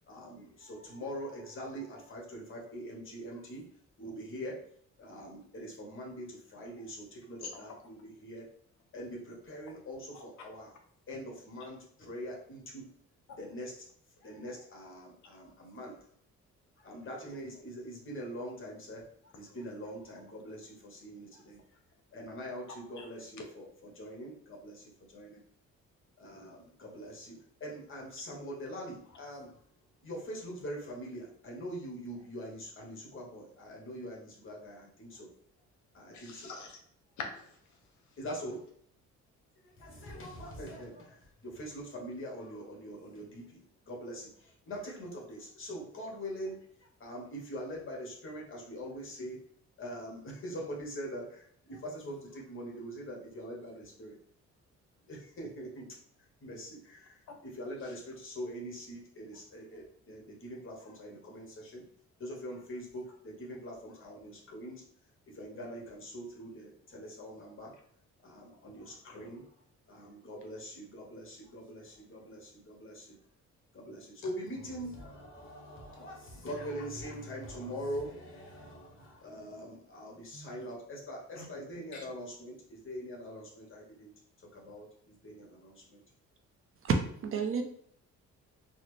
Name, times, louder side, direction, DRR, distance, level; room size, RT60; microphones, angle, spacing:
voice 1, 0.1-3.6 4.0-4.6 5.0-8.4 8.9-10.7 11.1-12.8 13.4-13.7 14.2-16.0 16.8-21.6 22.1-23.7 23.9-25.4 26.2-29.5 30.0-35.3 35.9-36.5 38.2-38.6 39.8-43.6 43.9-46.6 47.0-49.4 49.8-54.2 55.1-55.9 56.4-57.2 57.6-61.8 62.2-64.8 65.3-67.7 68.2-69.4 69.9-73.2 73.7-84.1 84.5-86.0, equal, 45° left, -1 dB, 1.3 m, -43 dB
voice 2, 7.4-7.8 10.1-10.3 13.4-13.5 23.0-23.1 36.1-36.8 37.2-38.2 40.0-40.1 57.3-57.4 57.8-58.0 74.2-74.3 80.3-80.5 81.3-81.5 81.8-82.1, left 4 dB, 70° left, 3 dB, 0.8 m, -46 dB
voice 3, 86.8-87.6, right 4 dB, 45° right, 5 dB, 0.6 m, -29 dB
4.0 x 2.1 x 3.2 m, 0.64 s
cardioid pair, 90°, 30 cm